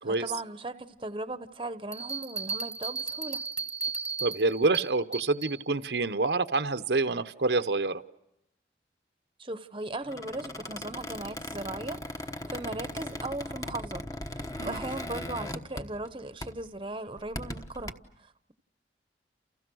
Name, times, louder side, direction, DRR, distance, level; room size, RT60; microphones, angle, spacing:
voice 1, 0.0-3.4 9.4-14.0 14.3-18.5, right 2 dB, 30° right, 1.0 m, -38 dB
sound 1, 1.9-5.6, right 5 dB, 5° right, 1.2 m, -35 dB
voice 2, 4.2-8.0 14.6-14.8, right 3 dB, 70° right, 0.9 m, -27 dB
Squeak, 10.0-16.1 16.4-16.7 17.2-17.9, left 1 dB, 20° left, 1.2 m, -38 dB
29.5 x 29.5 x 6.3 m
head